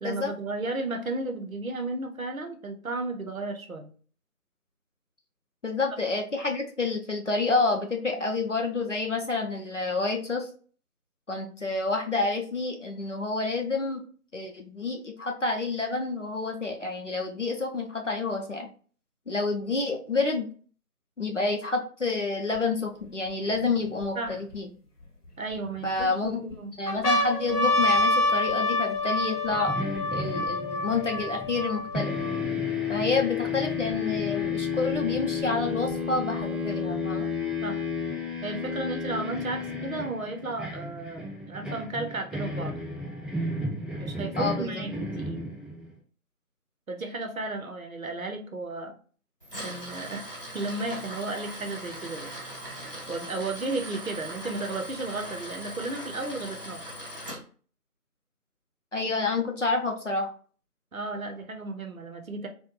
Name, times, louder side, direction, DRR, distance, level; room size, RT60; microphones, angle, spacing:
voice 1, 0.0-3.9 24.2-24.4 25.4-26.7 37.6-37.8 38.4-42.8 44.0-45.4 46.9-48.9 49.6-50.2 50.5-52.3 53.1-56.8 60.9-62.5, right 2 dB, 65° right, 4 dB, 0.6 m, -34 dB
voice 2, 5.6-10.5 11.3-14.0 14.3-18.7 19.3-20.5 21.2-24.7 25.8-26.4 26.8-29.7 30.1-32.1 32.9-37.3 44.4-44.8 58.9-60.3, left 3 dB, 55° left, 2 dB, 0.5 m, -29 dB
sound 1, 22.5-22.6 23.3-24.6 25.3-26.0 26.5-26.6 26.9-32.5 33.2-33.3 33.5-34.5 35.4-36.4, left 1 dB, 80° left, 0.8 m, -27 dB
sound 2, 29.5-31.7 31.9-45.9, left 4 dB, ahead, 0.3 m, -32 dB
Tools, 49.4-57.4, equal, 35° right, 0.9 m, -40 dB
2.4 x 2.1 x 2.9 m, 0.42 s
figure-of-eight pair, 170°, 46 cm